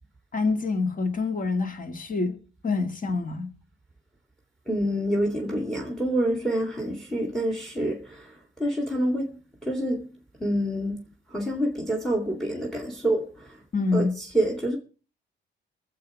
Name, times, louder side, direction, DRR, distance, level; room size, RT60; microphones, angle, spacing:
voice 1, 0.3-2.4 2.6-3.5 13.7-14.2, left 3 dB, 45° left, 2.2 m, -26 dB
voice 2, 4.7-13.6 13.9-14.8, right 1 dB, ahead, 2.2 m, -27 dB
22.0 x 7.5 x 4.8 m
cardioid pair, 90°, 20 cm